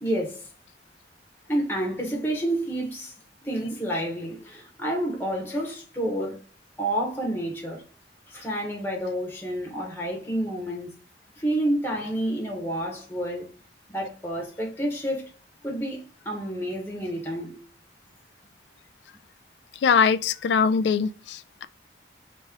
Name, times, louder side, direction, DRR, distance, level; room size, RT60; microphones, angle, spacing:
voice 1, 0.0-0.5 1.5-3.1 3.4-6.4 6.8-7.8 8.3-10.9 11.4-13.5 13.9-15.3 15.6-17.6, right 1 dB, 10° left, 1.0 m, -29 dB
voice 2, 19.8-21.6, left 6 dB, 80° left, 0.3 m, -22 dB
3.0 x 2.9 x 3.4 m
head